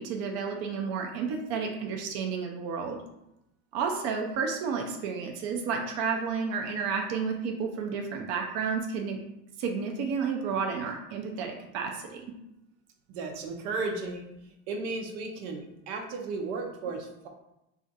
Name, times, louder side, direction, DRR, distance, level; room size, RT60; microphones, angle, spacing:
voice 1, 0.0-3.0 3.7-9.2 9.6-12.3, right 5 dB, 45° right, 3 dB, 0.4 m, -31 dB
voice 2, 13.1-14.2 14.7-17.3, right 3 dB, 90° right, 2 dB, 0.7 m, -34 dB
2.4 x 2.4 x 3.9 m, 0.85 s
cardioid pair, 155°, 35 cm